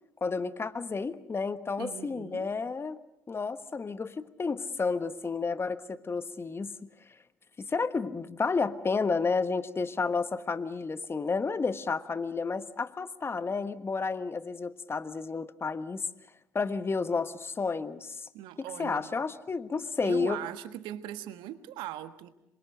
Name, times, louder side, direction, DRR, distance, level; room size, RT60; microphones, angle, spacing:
voice 1, 0.2-3.0 3.3-6.7 7.6-16.0 16.5-18.2 18.6-20.4, left 4 dB, 30° left, 13 dB, 1.3 m, -31 dB
voice 2, 1.8-2.5 18.3-19.1 20.0-22.3, right 12 dB, 65° right, 11 dB, 1.5 m, -40 dB
26.5 x 24.0 x 6.6 m, 0.86 s
hypercardioid pair, 50°, 9 cm